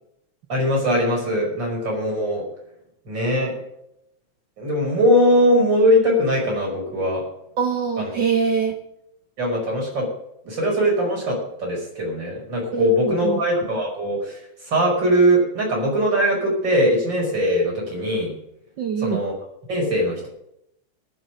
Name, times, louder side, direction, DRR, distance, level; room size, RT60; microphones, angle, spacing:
voice 1, 0.5-2.4 3.1-3.6 4.6-7.2 8.0-8.1 9.4-10.1 10.4-14.4 14.7-18.3 19.0-19.3 19.7-20.3, equal, 35° right, -1 dB, 5.9 m, -21 dB
voice 2, 7.6-8.8 12.7-13.4 18.8-19.2, right 6 dB, 75° right, 4 dB, 1.0 m, -24 dB
19.5 x 7.9 x 5.2 m, 0.79 s
omnidirectional pair, 3.4 m